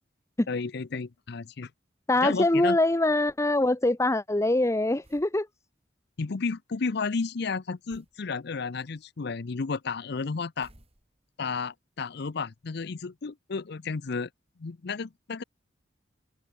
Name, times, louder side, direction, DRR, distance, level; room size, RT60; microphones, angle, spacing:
voice 1, 0.5-1.7 2.2-2.8 6.2-10.7 11.4-14.3 14.6-15.4, left 4 dB, 60° left, 0.6 m, -32 dB
voice 2, 2.1-5.5, left 2 dB, 15° left, 0.7 m, -23 dB
sound 1, 5.0-5.4 7.9-8.2 10.6-11.4, right 1 dB, 30° right, 3.2 m, -58 dB
open air
head